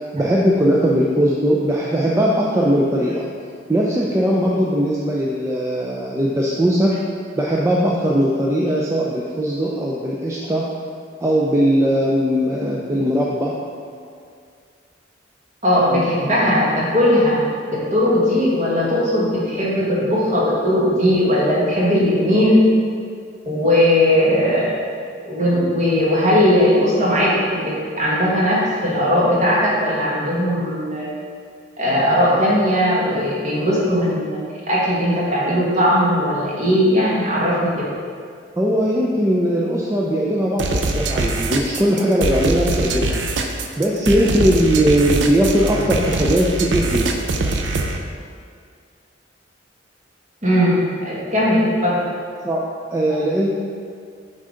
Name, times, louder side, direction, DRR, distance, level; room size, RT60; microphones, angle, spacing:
voice 1, 0.0-3.3 3.7-7.0 7.4-10.7 11.2-13.6 38.6-43.2 43.8-47.1 52.4-52.6 52.9-53.5, equal, 15° right, -4 dB, 0.4 m, -19 dB
voice 2, 15.6-17.4 17.7-22.6 23.4-24.8 25.2-31.1 31.8-34.4 34.7-37.7 41.1-41.2 50.4-52.0, equal, 40° right, -6 dB, 1.6 m, -18 dB
sound 1, 40.6-48.0, right 2 dB, 70° right, 0.5 m, -22 dB
7.6 x 3.8 x 3.8 m, 2.2 s
head